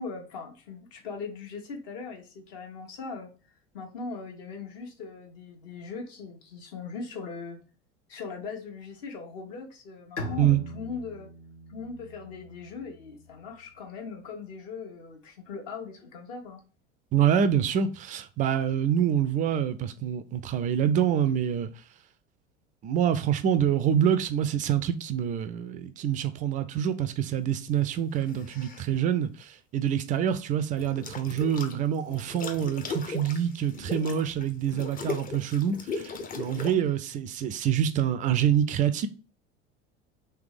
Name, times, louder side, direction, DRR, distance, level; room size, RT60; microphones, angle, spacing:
voice 1, 0.0-3.3 3.7-7.6 8.1-11.3 11.7-16.6, left 4 dB, 50° left, 1.3 m, -40 dB
Bowed string instrument, 10.2-13.6, left 1 dB, 75° left, 1.0 m, -41 dB
voice 2, 17.1-21.7 22.8-39.1, right 9 dB, 25° right, 0.3 m, -26 dB
sound 1, 28.1-28.8 30.8-31.7 32.1-36.7, left 3 dB, 25° left, 0.6 m, -37 dB
3.4 x 3.2 x 4.8 m
figure-of-eight pair, 70°, 36 cm